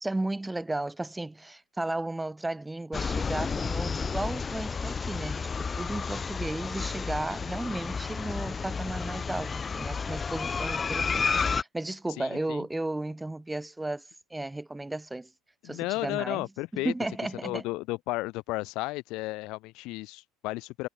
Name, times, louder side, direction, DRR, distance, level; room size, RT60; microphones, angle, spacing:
voice 1, 0.0-11.4 11.7-14.0 14.3-15.3 15.6-16.5 16.7-17.6, right 2 dB, 10° right, 2.0 m, -34 dB
sound 1, 2.9-11.6, left 5 dB, 30° left, 0.4 m, -31 dB
voice 2, 12.2-12.7 15.6-16.9 17.4-20.9, left 21 dB, 65° left, 1.6 m, -33 dB
hypercardioid pair, 70°, 0 cm